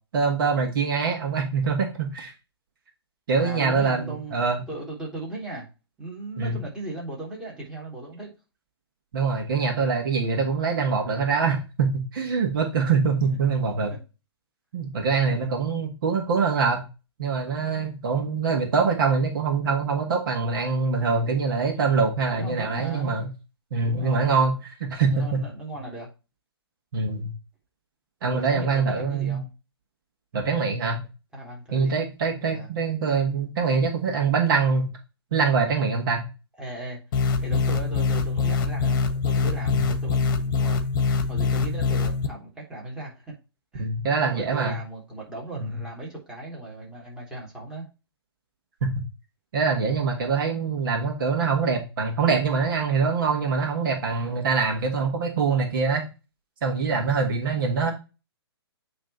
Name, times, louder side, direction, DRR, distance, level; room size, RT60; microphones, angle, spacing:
voice 1, 0.1-2.3 3.3-4.7 6.4-6.6 9.1-13.9 14.7-16.9 17.2-23.3 23.7-25.4 26.9-27.3 28.2-29.4 30.3-31.0 31.7-34.9 35.3-36.3 39.7-39.9 43.8-44.8 45.6-45.8 48.8-48.9 49.5-56.0 56.6-57.9, right 5 dB, 55° right, 3 dB, 1.8 m, -24 dB
voice 2, 3.4-5.7 6.0-8.3 13.2-13.4 13.9-14.0 21.7-22.0 22.3-23.2 23.8-24.3 25.1-26.1 28.2-29.5 31.3-32.0 32.5-32.7 36.6-40.9 41.3-43.3 43.7-43.9 44.3-47.9, right 2 dB, 5° right, -5 dB, 3.1 m, -37 dB
sound 1, 37.1-42.3, left 4 dB, 50° left, 1.1 m, -24 dB
8.9 x 3.4 x 4.2 m, 0.29 s
figure-of-eight pair, 125°, 14 cm